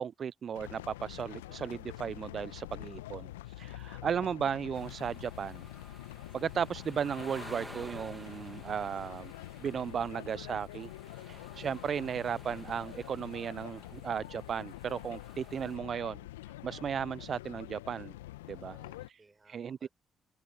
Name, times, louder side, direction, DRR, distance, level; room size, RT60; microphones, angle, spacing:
voice 1, 0.0-5.7 6.3-9.3 9.6-10.9 11.3-16.2 16.6-18.1 18.5-18.8 19.5-19.9, right 7 dB, 50° right, 0.7 m, -35 dB
sound 1, 0.5-19.1, left 17 dB, 80° left, 1.6 m, -46 dB
voice 2, 2.9-3.4 8.8-9.2 11.0-11.6 18.6-19.9, right 3 dB, 25° right, 7.9 m, -65 dB
sound 2, 4.7-15.8, right 1 dB, 10° right, 3.0 m, -53 dB
open air
figure-of-eight pair, 40°, 0 cm